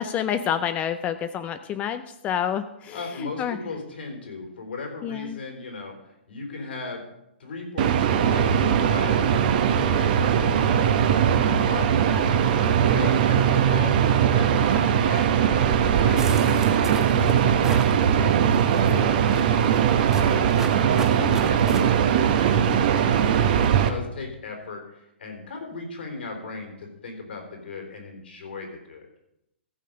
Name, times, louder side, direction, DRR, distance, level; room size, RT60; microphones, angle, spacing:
voice 1, 0.0-3.6 5.0-5.4 21.2-21.5, left 9 dB, 25° left, 10 dB, 0.5 m, -29 dB
voice 2, 2.9-6.0 6.3-7.0 7.4-15.6 15.9-16.7 16.9-18.3 18.7-20.4 20.9-29.1, left 3 dB, 70° left, 3 dB, 3.9 m, -37 dB
sound 1, 7.8-23.9, right 8 dB, 50° right, 1.1 m, -20 dB
sound 2, 16.2-18.0 18.5-18.9 19.3-21.8, right 3 dB, 10° right, 1.0 m, -37 dB
14.5 x 6.6 x 5.3 m, 0.81 s
figure-of-eight pair, 120°, 6 cm